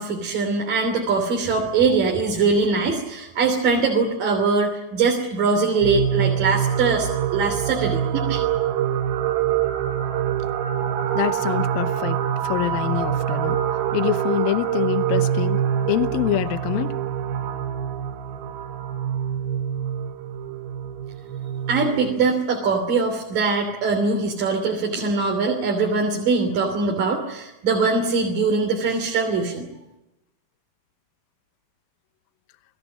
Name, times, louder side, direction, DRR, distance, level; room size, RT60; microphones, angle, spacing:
voice 1, 0.0-8.4 21.7-29.7, right 4 dB, 65° right, 1 dB, 4.8 m, -22 dB
sound 1, 5.8-22.2, right 9 dB, 85° right, 3.2 m, -25 dB
voice 2, 11.2-13.6 13.9-15.6 15.9-16.9, left 15 dB, 80° left, 11 dB, 2.8 m, -25 dB
29.5 x 19.5 x 8.5 m, 0.94 s
omnidirectional pair, 4.2 m